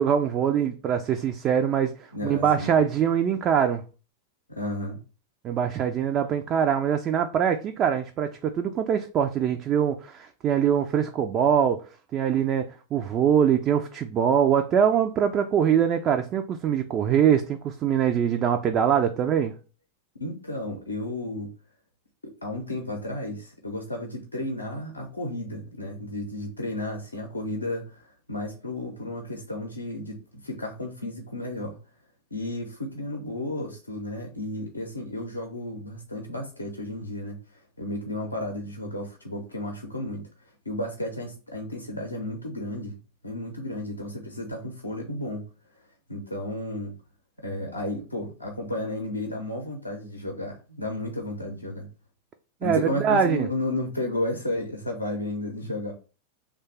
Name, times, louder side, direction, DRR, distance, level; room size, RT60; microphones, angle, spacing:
voice 1, 0.0-3.8 5.4-11.8 12.1-12.7 12.9-19.5 52.6-53.5, right 8 dB, 30° right, 0.3 m, -23 dB
voice 2, 2.1-2.7 4.5-5.0 20.2-21.5 22.2-31.8 32.3-40.2 40.7-43.0 43.2-45.4 46.1-46.9 47.4-51.9 52.6-55.9, left 1 dB, 80° left, 0.6 m, -33 dB
3.1 x 2.2 x 4.2 m
figure-of-eight pair, 90°, 0 cm